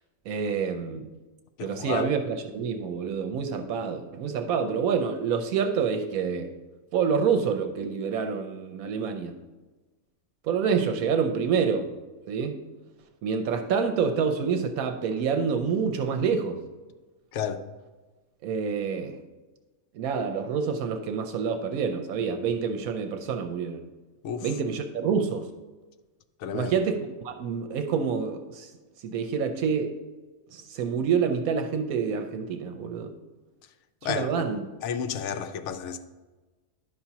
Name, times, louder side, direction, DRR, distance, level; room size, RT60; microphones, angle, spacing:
voice 1, 0.3-1.1 1.6-6.5 6.9-9.3 10.4-11.9 12.3-12.6 13.2-16.6 18.4-19.2 19.9-23.8 24.4-25.5 26.5-28.7 29.0-30.0 30.5-33.1 34.0-34.7, right 6 dB, 80° right, 1.0 m, -27 dB
voice 2, 1.6-2.1 17.3-17.6 24.2-24.4 26.4-26.7 34.0-34.3 34.8-36.0, left 8 dB, 65° left, 0.8 m, -31 dB
11.0 x 5.8 x 2.8 m
omnidirectional pair, 1.5 m